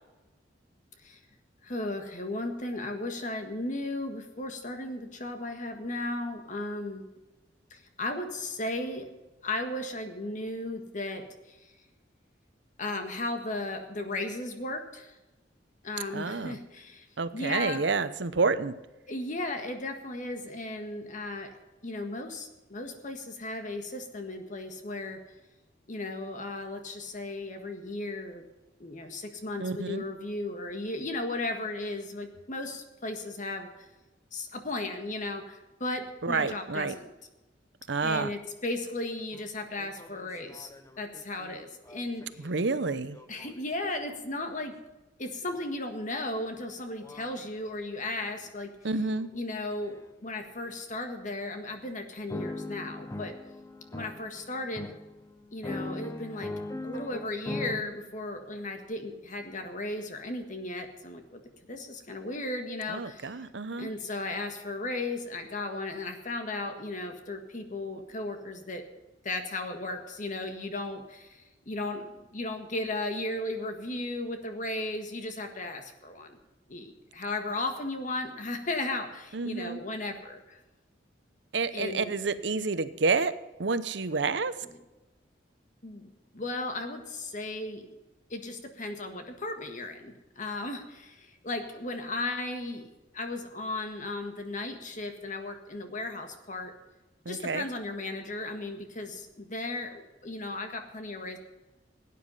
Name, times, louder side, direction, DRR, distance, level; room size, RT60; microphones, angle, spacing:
voice 1, 1.6-7.0 7.7-9.0 9.4-11.7 12.8-15.2 15.8-17.1 17.3-17.8 19.1-21.5 21.8-25.2 25.9-28.4 28.8-33.8 34.3-37.1 38.0-40.7 41.0-42.5 43.3-44.7 45.2-48.7 49.3-53.3 53.9-54.9 55.5-56.5 56.8-61.4 61.7-63.4 63.8-68.8 69.2-76.4 76.7-80.6 81.7-82.1 84.6-84.8 85.8-86.1 86.3-87.9 88.3-96.7 97.3-101.4, left 2 dB, 45° left, 6 dB, 1.6 m, -35 dB
voice 2, 16.1-16.6 17.2-18.7 29.6-30.0 36.2-36.9 37.9-38.3 42.4-43.2 48.8-49.3 62.9-63.9 79.3-79.8 81.5-83.3 83.6-84.5 97.3-97.7, right 4 dB, 70° right, 13 dB, 0.8 m, -29 dB
sound 1, 39.3-39.4 39.8-44.1 45.5-45.6 46.3-46.5 47.0-47.4 48.0-48.4 49.0-49.3 49.8-50.0 50.6-50.8 51.4-51.6 52.3-57.8, left 2 dB, 15° left, 0.7 m, -41 dB
17.5 x 9.4 x 5.6 m, 1.0 s
head